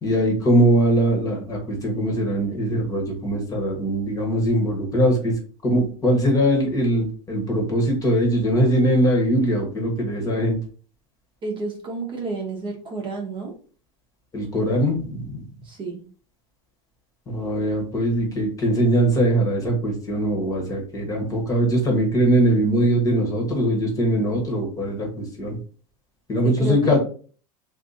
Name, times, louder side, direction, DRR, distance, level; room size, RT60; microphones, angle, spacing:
voice 1, 0.0-5.3 5.6-10.6 14.3-15.4 17.3-25.6 26.3-27.0, right 1 dB, 20° left, 0 dB, 1.2 m, -21 dB
voice 2, 11.4-13.5 15.6-16.0 26.6-27.0, right 3 dB, 30° right, -1 dB, 0.9 m, -30 dB
2.7 x 2.5 x 3.7 m, 0.41 s
supercardioid pair, 135°, 17 cm